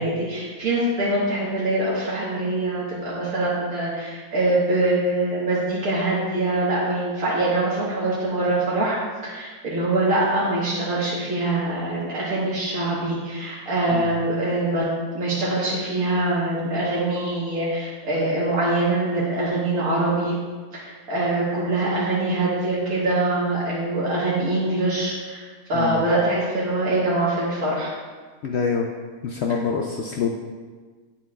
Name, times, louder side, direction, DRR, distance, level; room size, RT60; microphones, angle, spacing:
voice 1, 0.0-9.0 9.2-14.9 15.1-20.3 20.7-27.9, right 2 dB, 70° right, -8 dB, 1.9 m, -24 dB
voice 2, 28.4-28.9 29.2-30.3, left 5 dB, 70° left, 1 dB, 0.6 m, -25 dB
8.6 x 7.1 x 2.4 m, 1.4 s
omnidirectional pair, 1.6 m